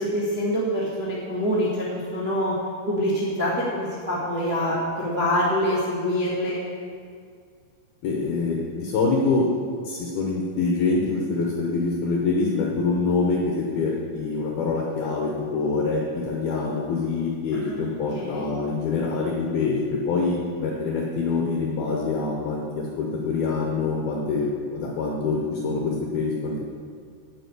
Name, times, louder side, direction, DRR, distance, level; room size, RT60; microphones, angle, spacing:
voice 1, 0.0-2.5 2.9-6.6 17.5-18.5, equal, 40° right, -9 dB, 1.4 m, -25 dB
voice 2, 8.0-9.5 9.8-19.8 20.1-24.5 24.7-26.6, left 4 dB, 70° left, -1 dB, 2.4 m, -25 dB
9.0 x 9.0 x 8.1 m, 2.1 s
omnidirectional pair, 5.6 m